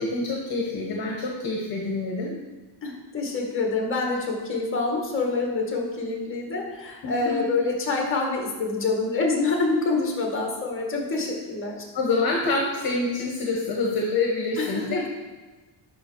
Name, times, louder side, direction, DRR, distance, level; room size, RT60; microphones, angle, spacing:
voice 1, 0.0-2.3 7.0-7.4 11.9-14.8, left 3 dB, 50° left, -1 dB, 1.5 m, -26 dB
voice 2, 2.8-11.7 14.6-15.0, left 3 dB, 25° left, 0 dB, 2.1 m, -26 dB
9.7 x 5.9 x 4.7 m, 1.2 s
cardioid pair, 150°, 46 cm